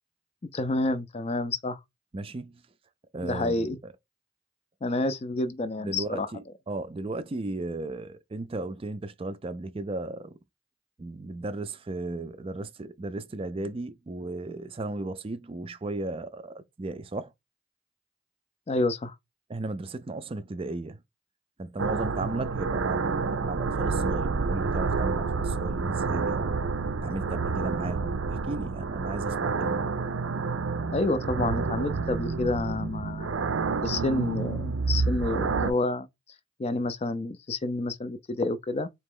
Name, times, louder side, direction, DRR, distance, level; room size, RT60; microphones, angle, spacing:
voice 1, 0.5-1.8 3.2-3.8 4.8-6.3 18.7-19.2 30.9-33.5 33.8-36.1 36.6-38.9, left 2 dB, 30° left, 0.4 m, -29 dB
voice 2, 2.1-2.6 3.1-3.9 5.8-10.4 11.0-17.3 19.5-21.0 21.6-26.6 27.0-30.0, right 2 dB, 30° right, 0.4 m, -35 dB
sound 1, 21.8-35.7, right 4 dB, 80° right, 0.5 m, -29 dB
4.1 x 2.9 x 3.7 m
head